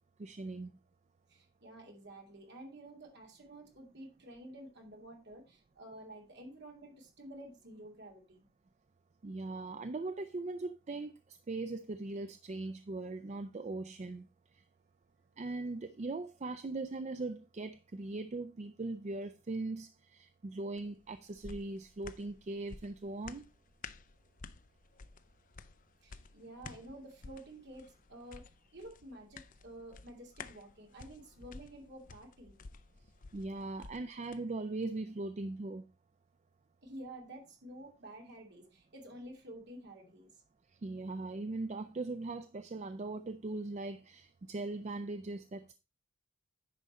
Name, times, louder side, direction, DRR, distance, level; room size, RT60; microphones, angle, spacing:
voice 1, 0.2-0.7 9.2-14.3 15.4-23.5 33.3-35.8 40.8-45.7, right 2 dB, 30° right, 0.4 m, -40 dB
voice 2, 1.3-8.5 26.0-28.4 28.7-32.5 36.8-40.3, right 1 dB, 55° right, 2.7 m, -50 dB
sound 1, 20.8-34.4 34.8-34.9, left 4 dB, 40° left, 0.5 m, -53 dB
10.0 x 5.3 x 4.2 m
head